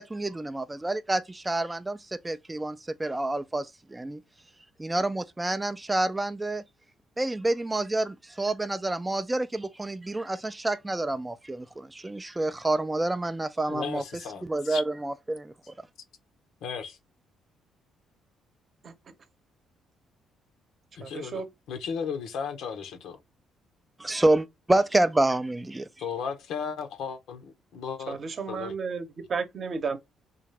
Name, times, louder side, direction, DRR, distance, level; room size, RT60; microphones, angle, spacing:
voice 1, 0.0-4.2 4.8-6.6 7.2-14.0 14.4-15.7 24.0-25.9, right 2 dB, 15° right, 0.3 m, -28 dB
voice 2, 13.7-14.8 16.6-17.0 20.9-21.3 21.7-23.2 26.0-28.2 28.5-28.7, left 6 dB, 80° left, 0.8 m, -35 dB
voice 3, 28.1-30.0, right 5 dB, 45° right, 0.8 m, -32 dB
3.9 x 2.4 x 3.2 m
cardioid pair, 100°, 0 cm